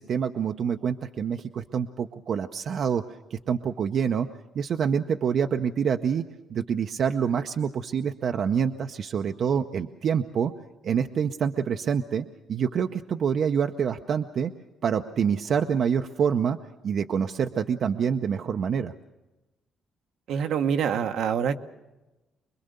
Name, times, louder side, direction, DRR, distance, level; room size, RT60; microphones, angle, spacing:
voice 1, 0.0-3.0 3.3-4.3 4.5-6.2 6.5-10.5 10.8-14.5 14.8-16.6 16.8-18.9, right 7 dB, 60° right, 6 dB, 0.7 m, -26 dB
voice 2, 20.3-21.6, right 7 dB, 80° right, 7 dB, 1.0 m, -25 dB
25.0 x 21.5 x 6.8 m, 1.1 s
cardioid pair, 90°, 0 cm